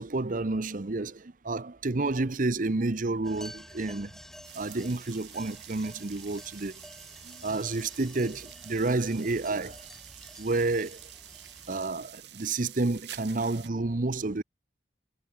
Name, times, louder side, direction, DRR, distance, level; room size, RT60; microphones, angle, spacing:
voice 1, 0.0-4.1 4.5-6.7 7.2-9.8 10.4-11.0 11.7-14.4, right 2 dB, 50° right, 0.9 m, -30 dB
sound 1, 3.2-11.8, equal, ahead, 4.7 m, -50 dB
sound 2, 4.4-13.7, right 13 dB, 75° right, 4.0 m, -48 dB
head